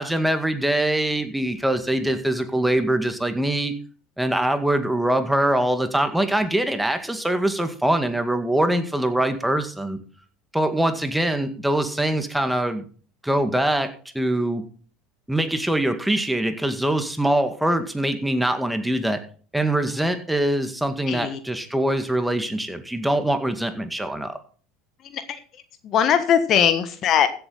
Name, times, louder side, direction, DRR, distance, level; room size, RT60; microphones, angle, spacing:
voice 1, 0.0-3.7 4.2-10.0 10.5-12.9 13.2-14.6 15.3-19.2 19.5-24.4, right 1 dB, 5° right, 7 dB, 2.0 m, -23 dB
voice 2, 21.1-21.4 25.0-25.4 25.8-27.3, left 8 dB, 45° left, 11 dB, 1.3 m, -20 dB
15.5 x 7.9 x 4.1 m, 0.41 s
hypercardioid pair, 80°, 0 cm